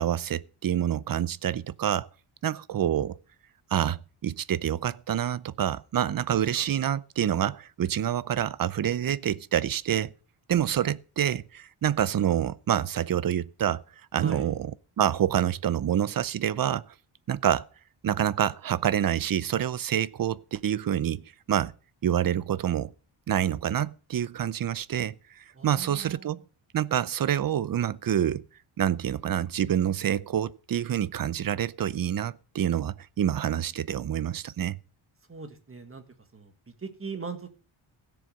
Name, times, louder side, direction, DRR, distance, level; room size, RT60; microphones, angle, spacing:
voice 1, 0.0-2.1 2.4-3.2 3.7-10.1 10.5-13.8 14.1-14.7 15.0-16.9 17.3-17.7 18.0-21.7 22.0-22.9 23.3-26.4 26.7-28.4 28.8-34.8, right 10 dB, 45° right, 0.6 m, -27 dB
voice 2, 14.2-14.5 25.5-26.4 35.3-36.0 36.3-36.5 36.8-37.5, right 4 dB, 25° right, 1.8 m, -40 dB
16.0 x 6.9 x 6.4 m
wide cardioid pair, 130°, 49 cm